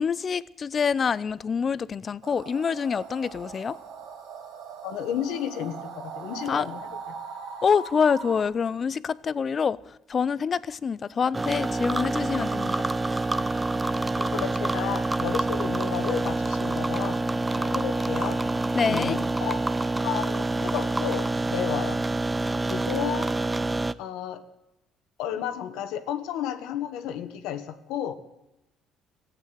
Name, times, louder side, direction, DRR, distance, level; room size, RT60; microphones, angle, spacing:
voice 1, 0.0-3.8 6.5-6.7 7.6-12.8 18.7-19.2, left 6 dB, 35° left, 0.5 m, -26 dB
sound 1, 2.2-8.4, right 5 dB, 80° right, 2.4 m, -40 dB
voice 2, 4.8-6.8 14.2-17.2 17.5-18.4 18.9-19.6 20.0-22.0 22.7-23.3 24.0-24.4 25.2-28.1, left 9 dB, 90° left, 1.5 m, -32 dB
sound 2, 11.3-23.9, right 2 dB, 15° right, 0.5 m, -27 dB
15.0 x 8.9 x 9.2 m
cardioid pair, 130°, 0 cm